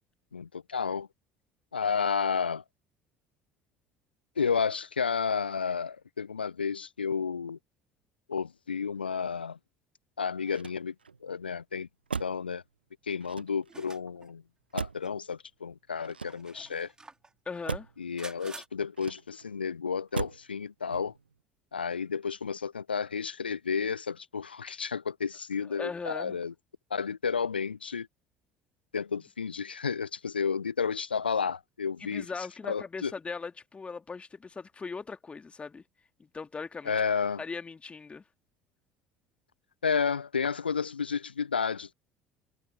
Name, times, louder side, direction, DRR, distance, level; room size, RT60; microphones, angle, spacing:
voice 1, 0.3-1.1 1.7-2.6 4.4-7.6 8.3-9.6 10.2-10.9 11.2-11.9 12.2-12.6 13.1-14.4 14.7-16.9 18.0-21.1 21.7-26.5 26.9-28.1 28.9-32.3 32.7-33.1 36.9-37.4 39.8-41.9, left 6 dB, 80° left, 0.7 m, -31 dB
Motor vehicle (road), 10.4-11.2 12.1-12.5 13.2-13.9 14.8-15.2 16.0-16.8 17.7-18.0 18.9-19.5 20.1-20.5 20.9-21.3, right 5 dB, 85° right, 0.4 m, -38 dB
sound 1, 13.7-14.3 15.0-15.1 16.1-17.3 18.2-18.7, right 3 dB, 15° right, 5.2 m, -48 dB
voice 2, 17.5-17.9 25.7-26.4 32.0-35.8 36.2-36.9 37.4-38.2, left 4 dB, 20° left, 2.5 m, -39 dB
figure-of-eight pair, 60°, 5 cm